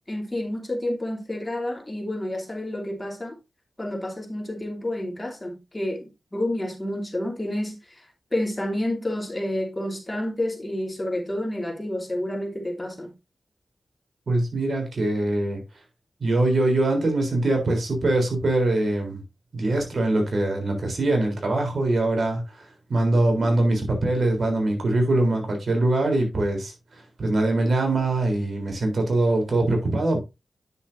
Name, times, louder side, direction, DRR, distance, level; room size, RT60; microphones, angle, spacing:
voice 1, 0.1-3.4 3.8-8.0 8.3-13.1, left 1 dB, 20° left, 2.7 m, -29 dB
voice 2, 14.3-15.6 16.2-19.2 19.5-30.2, right 2 dB, 65° right, 3.6 m, -23 dB
9.4 x 6.9 x 2.7 m
cardioid pair, 70°, 0 cm